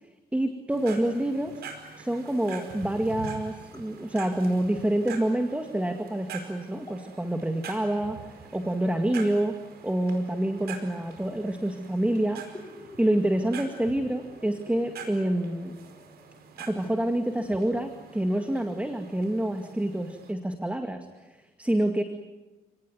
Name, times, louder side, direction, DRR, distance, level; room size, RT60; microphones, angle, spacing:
voice 1, 0.3-1.6 2.0-8.3 8.5-9.6 9.8-12.4 13.0-15.8 16.6-22.0, right 1 dB, 10° right, 6 dB, 2.2 m, -27 dB
sound 1, 0.7-20.3, right 6 dB, 80° right, 5.0 m, -45 dB
sound 2, 2.6-16.4, left 2 dB, 25° left, 7.4 m, -54 dB
29.5 x 19.0 x 9.6 m, 1.2 s
cardioid pair, 85°, 16 cm